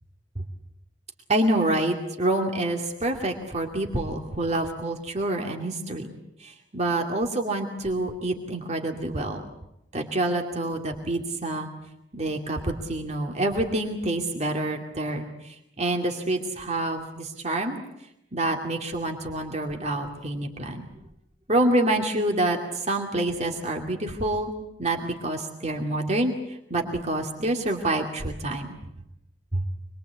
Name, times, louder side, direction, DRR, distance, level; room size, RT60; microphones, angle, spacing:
voice 1, 1.3-6.1 6.4-9.4 9.9-11.7 12.1-17.8 18.3-20.9 21.5-24.5 24.8-28.8 29.5-29.6, right 1 dB, 40° right, 2 dB, 2.5 m, -27 dB
26.0 x 22.5 x 8.2 m, 0.82 s
head